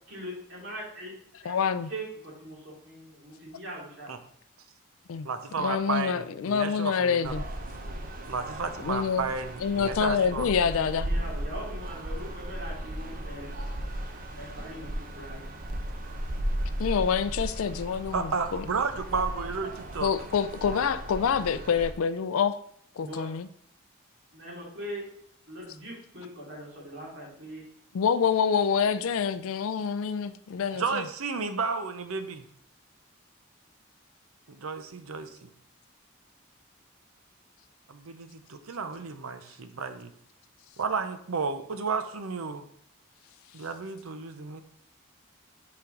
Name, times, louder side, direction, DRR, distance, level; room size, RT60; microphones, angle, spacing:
voice 1, 0.1-1.1 1.4-1.5 1.8-4.1 7.6-8.0 10.7-13.5 14.4-15.5 23.0-23.3 24.3-25.0 25.5-27.7, right 1 dB, 60° right, -4 dB, 2.8 m, -41 dB
voice 2, 1.5-1.9 5.1-5.3 5.6-7.4 8.8-9.3 9.6-11.1 16.8-18.6 20.0-22.6 23.0-23.5 27.9-31.0, left 6 dB, 80° left, 13 dB, 0.4 m, -27 dB
voice 3, 5.2-7.3 8.3-10.5 18.1-20.1 30.7-32.5 34.5-35.5 37.9-40.1 40.8-42.7 43.5-44.6, right 4 dB, 85° right, 9 dB, 0.7 m, -32 dB
sound 1, 7.2-21.9, right 1 dB, 40° right, 0.7 m, -36 dB
5.7 x 5.1 x 3.8 m, 0.67 s
head